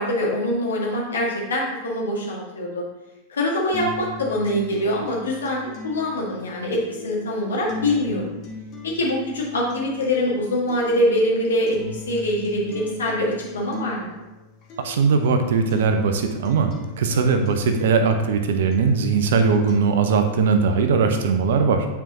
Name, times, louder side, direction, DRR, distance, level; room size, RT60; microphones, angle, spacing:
voice 1, 0.0-2.8 3.3-8.3 8.8-14.2, left 1 dB, 70° left, -3 dB, 1.9 m, -24 dB
sound 1, 3.7-19.7, left 3 dB, 35° left, 1.5 m, -39 dB
voice 2, 14.8-21.9, right 5 dB, 60° right, 7 dB, 0.7 m, -20 dB
8.9 x 4.6 x 3.0 m, 1.0 s
figure-of-eight pair, 90°, 0 cm